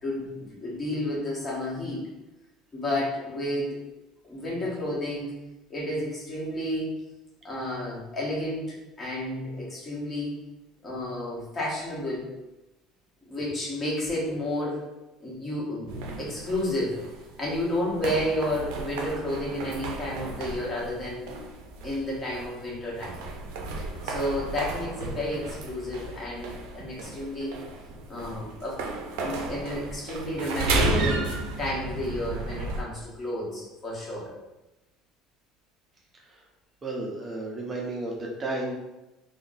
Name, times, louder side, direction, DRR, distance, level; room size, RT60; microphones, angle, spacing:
voice 1, 0.0-2.1 2.7-3.8 4.2-5.3 5.7-7.0 7.4-10.4 10.8-12.3 13.3-14.8 15.2-15.9 16.2-17.0 17.4-21.3 21.8-23.2 24.0-27.5 28.1-28.8 29.2-31.3 31.6-34.3, left 1 dB, 30° left, -5 dB, 1.2 m, -31 dB
sound 1, 15.9-32.8, right 2 dB, 80° right, 0.4 m, -33 dB
voice 2, 36.1-36.5 36.8-38.8, right 2 dB, 30° right, -2 dB, 0.5 m, -33 dB
3.5 x 2.1 x 2.6 m, 1.0 s
supercardioid pair, 105°, 0 cm